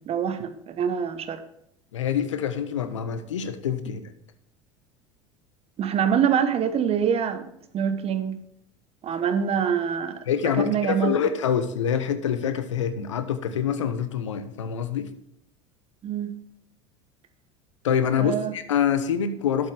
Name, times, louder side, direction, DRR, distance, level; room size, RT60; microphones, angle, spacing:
voice 1, 0.0-1.4 5.8-7.4 7.7-8.4 9.0-10.2 10.6-11.1 16.0-16.3 18.2-18.5, right 8 dB, 40° right, 1.2 m, -25 dB
voice 2, 1.9-4.0 10.3-15.1 17.8-19.7, left 8 dB, 85° left, 0.9 m, -26 dB
12.0 x 8.1 x 3.5 m
hypercardioid pair, 75°, 16 cm